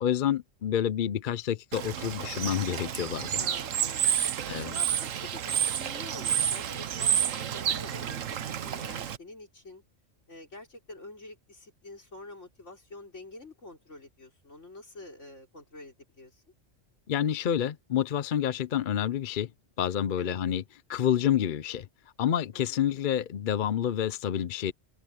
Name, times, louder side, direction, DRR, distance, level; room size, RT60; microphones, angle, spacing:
voice 1, 0.0-3.4 4.5-4.7 17.1-19.5 19.8-20.6 20.9-21.9 22.2-24.7, left 10 dB, 50° left, 0.7 m, -28 dB
Bird / Water, 1.7-9.2, right 9 dB, 85° right, 1.3 m, -30 dB
voice 2, 3.4-9.8 10.3-16.4 20.2-20.4 22.5-22.9, left 2 dB, 70° left, 4.8 m, -47 dB
open air
omnidirectional pair, 1.3 m